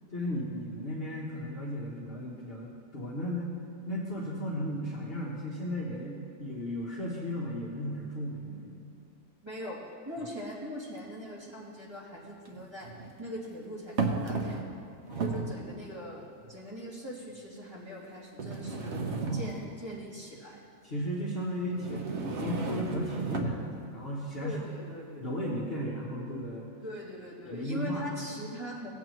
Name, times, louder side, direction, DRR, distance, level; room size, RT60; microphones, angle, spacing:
voice 1, 0.1-3.5 3.9-8.8 10.2-10.3 15.1-15.4 19.2-19.6 20.8-24.6 25.2-26.7 27.4-28.1, equal, 40° left, -5 dB, 1.3 m, -35 dB
voice 2, 9.4-9.8 10.0-12.9 13.2-14.8 15.2-16.2 16.5-20.6 24.4-25.3 26.8-28.9, equal, 15° right, -8 dB, 2.7 m, -41 dB
sound 1, 11.0-11.1 12.4-13.1 14.0-14.8 15.1-15.6 16.4-16.5 17.3-17.4 18.4-19.8 21.7-23.6, right 3 dB, 55° right, 1.0 m, -33 dB
17.5 x 8.4 x 3.1 m, 2.5 s
omnidirectional pair, 1.6 m